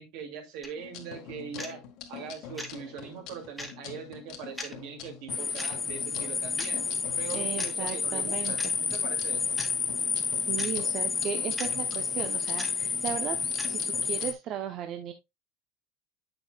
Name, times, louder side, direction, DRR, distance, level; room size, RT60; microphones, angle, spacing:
voice 1, 0.0-1.8 2.1-6.8 7.2-9.6, right 6 dB, 75° right, 4 dB, 2.4 m, -41 dB
sound 1, 0.6-0.7 1.6-1.8 2.6-2.7 3.6-3.7 4.6-4.7 5.6-5.7 6.6-6.7 7.6-7.7 8.6-8.7 9.6-9.7 10.6-10.7 11.6-11.7 12.6-12.7 13.6-13.7, left 1 dB, ahead, 1.4 m, -38 dB
sound 2, 0.8-14.3, left 8 dB, 60° left, 1.6 m, -45 dB
sound 3, 5.3-14.3, left 5 dB, 20° left, 0.6 m, -30 dB
voice 2, 7.3-8.5 10.5-13.4 13.7-15.1, right 9 dB, 45° right, 7 dB, 0.7 m, -36 dB
8.2 x 6.8 x 2.3 m, 0.21 s
supercardioid pair, 130°, 0 cm